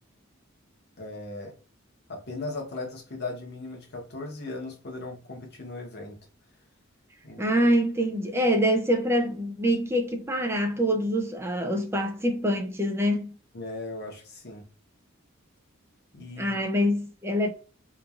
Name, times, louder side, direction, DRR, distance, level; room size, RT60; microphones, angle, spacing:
voice 1, 1.0-1.5 2.1-6.2 7.2-7.4 13.5-14.6 16.1-16.6, left 2 dB, 55° left, 0.9 m, -37 dB
voice 2, 7.4-13.3 16.4-17.5, equal, 10° right, 0.4 m, -25 dB
3.0 x 2.4 x 2.4 m
head